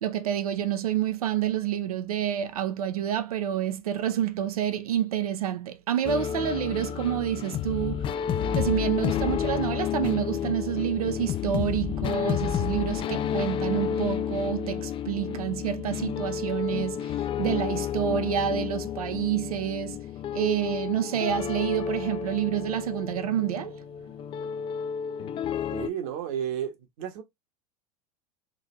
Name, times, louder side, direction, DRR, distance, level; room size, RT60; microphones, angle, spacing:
voice 1, 0.0-8.0 8.5-20.0 20.3-23.8, right 10 dB, 75° right, 0.6 m, -28 dB
sound 1, 6.1-25.9, left 8 dB, 25° left, 0.4 m, -31 dB
voice 2, 25.7-27.2, right 9 dB, 60° right, 1.4 m, -32 dB
3.9 x 2.7 x 3.1 m
hypercardioid pair, 85°, 19 cm